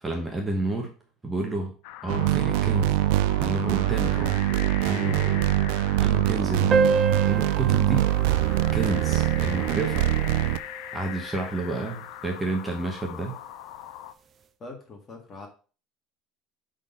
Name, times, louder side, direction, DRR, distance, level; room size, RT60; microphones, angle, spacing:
voice 1, 0.0-0.9 1.2-1.8 2.0-3.0 3.4-4.4 4.9-5.6 6.0-6.8 7.3-8.1 8.7-10.1 10.9-13.3, right 2 dB, 10° right, 1 dB, 1.0 m, -30 dB
sound 1, 1.8-14.1, left 12 dB, 75° left, 0.5 m, -41 dB
sound 2, 2.1-10.6, right 14 dB, 80° right, 0.3 m, -23 dB
sound 3, 6.7-11.7, right 4 dB, 25° right, 0.5 m, -30 dB
voice 2, 9.9-10.3 14.6-15.5, left 3 dB, 25° left, 3 dB, 1.6 m, -43 dB
5.6 x 3.9 x 5.4 m, 0.37 s
cardioid pair, 155°, 0 cm